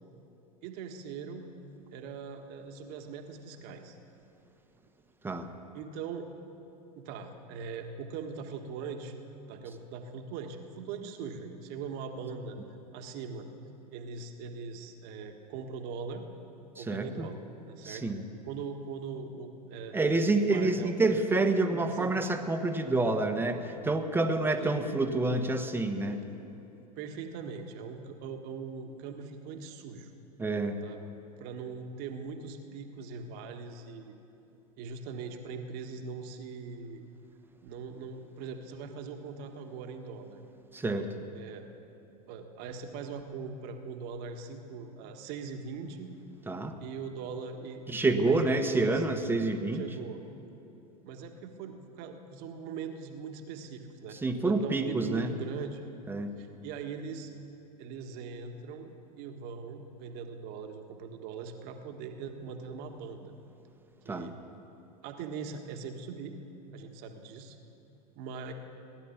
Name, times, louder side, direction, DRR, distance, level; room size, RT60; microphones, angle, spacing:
voice 1, 0.6-1.5 1.9-4.0 5.7-6.3 7.0-9.1 9.5-12.6 12.9-13.5 13.9-16.3 16.8-18.0 18.5-20.0 20.5-20.9 21.7-22.1 24.6-24.8 27.0-30.1 30.8-31.0 31.4-34.1 34.8-37.0 37.6-40.4 41.3-41.7 42.3-46.1 46.8-49.0 49.7-50.2 51.0-54.2 54.4-55.8 56.4-57.3 57.8-63.3 64.0-64.4 65.0-66.4 66.7-67.6 68.1-68.5, right 5 dB, 50° right, 5 dB, 1.6 m, -41 dB
voice 2, 16.7-17.3 17.8-18.2 19.9-26.2 30.4-30.8 40.7-41.1 46.5-46.8 47.9-49.8 54.1-55.3 56.1-56.3 64.1-64.3, right 2 dB, 10° right, 6 dB, 1.3 m, -28 dB
18.0 x 10.5 x 7.2 m, 2.8 s
hypercardioid pair, 90°, 20 cm